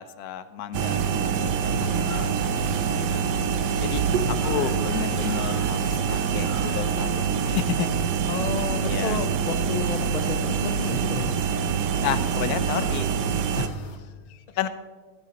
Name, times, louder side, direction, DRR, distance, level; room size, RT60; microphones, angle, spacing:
voice 1, 0.0-2.8 3.1-3.3 3.8-7.1 7.4-7.9 8.8-9.2 12.0-13.1 14.6-14.7, left 9 dB, 70° left, 12 dB, 1.1 m, -32 dB
sound 1, 0.7-13.7, right 6 dB, 85° right, 1.3 m, -25 dB
sound 2, 1.0-14.0, left 3 dB, 45° left, 1.3 m, -48 dB
voice 2, 1.7-2.2 4.1-4.4 8.3-11.4 13.6-14.6, left 5 dB, 90° left, 9 dB, 0.3 m, -32 dB
13.5 x 13.0 x 2.9 m, 1.4 s
omnidirectional pair, 1.8 m